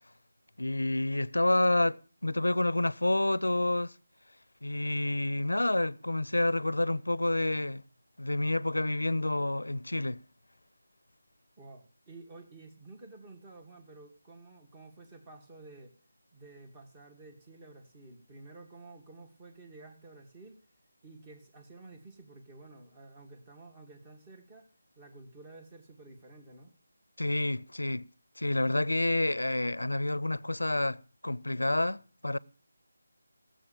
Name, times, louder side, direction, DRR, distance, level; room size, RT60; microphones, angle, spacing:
voice 1, 0.6-3.9 4.6-7.8 8.2-10.2 27.2-28.1 28.4-32.4, left 1 dB, 90° left, 0.7 m, -29 dB
voice 2, 11.6-15.9 16.3-20.6 21.0-24.7 25.0-26.7, right 2 dB, 20° right, 2.5 m, -51 dB
16.0 x 7.9 x 7.2 m
figure-of-eight pair, 165°, 0 cm